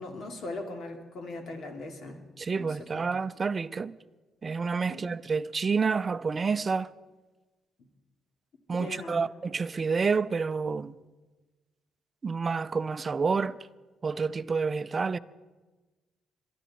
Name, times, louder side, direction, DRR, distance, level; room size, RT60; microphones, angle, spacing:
voice 1, 0.0-2.2 2.5-3.2 4.9-5.1 8.8-9.3, left 2 dB, 65° left, 2.4 m, -40 dB
voice 2, 2.4-4.0 4.4-6.9 8.7-10.9 12.2-13.6 14.0-15.2, right 5 dB, 35° right, 0.5 m, -29 dB
22.5 x 13.0 x 4.2 m
cardioid pair, 90°, 0 cm